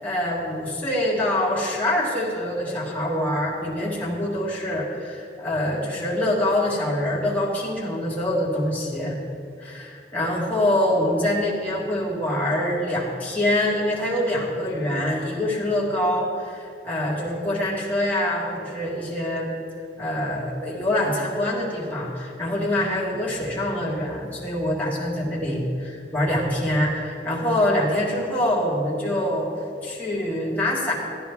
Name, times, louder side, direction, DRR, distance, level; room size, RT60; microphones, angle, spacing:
voice 1, 0.0-9.2 9.6-19.5 20.0-29.5 29.8-30.9, left 1 dB, 10° left, -6 dB, 1.8 m, -25 dB
13.5 x 10.0 x 3.6 m, 2.3 s
head